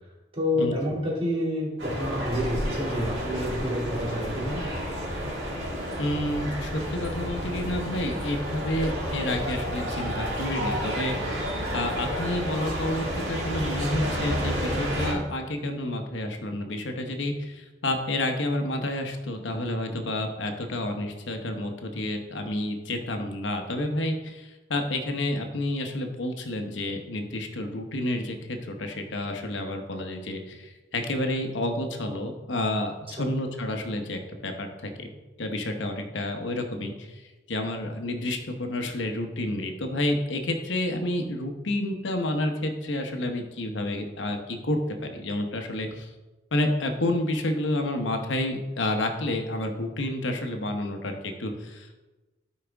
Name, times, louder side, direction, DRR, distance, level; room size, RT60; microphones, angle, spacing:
voice 1, 0.3-4.6 33.2-33.3, left 1 dB, 30° right, -4 dB, 2.5 m, -28 dB
sound 1, 1.8-15.1, equal, 65° right, 3.0 m, -30 dB
voice 2, 6.0-11.1 11.7-35.1 35.4-37.2 37.5-46.1 46.5-51.9, left 1 dB, 80° left, 5 dB, 1.0 m, -30 dB
12.5 x 4.9 x 3.5 m, 1.1 s
head